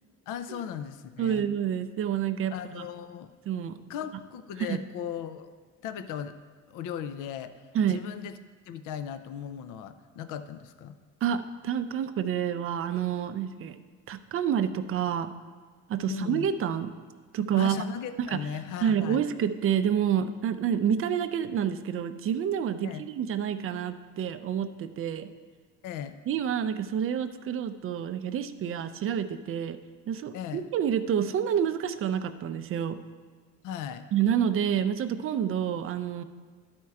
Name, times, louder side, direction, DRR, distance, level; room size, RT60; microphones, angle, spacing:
voice 1, 0.3-1.5 2.5-3.3 3.9-5.5 5.8-6.3 6.7-8.3 8.7-11.0 16.1-16.5 17.5-19.2 22.8-23.1 25.8-26.2 30.3-30.7 33.6-34.1, left 9 dB, 70° left, 11 dB, 0.5 m, -37 dB
voice 2, 1.2-2.8 3.5-3.8 4.6-4.8 7.7-8.0 11.2-13.8 14.1-15.3 15.9-16.9 17.3-17.8 18.3-18.4 18.8-25.3 26.3-29.8 30.1-33.0 34.1-36.2, right 8 dB, 45° right, 10 dB, 0.4 m, -28 dB
12.0 x 4.4 x 4.7 m, 1.5 s
cardioid pair, 135°, 32 cm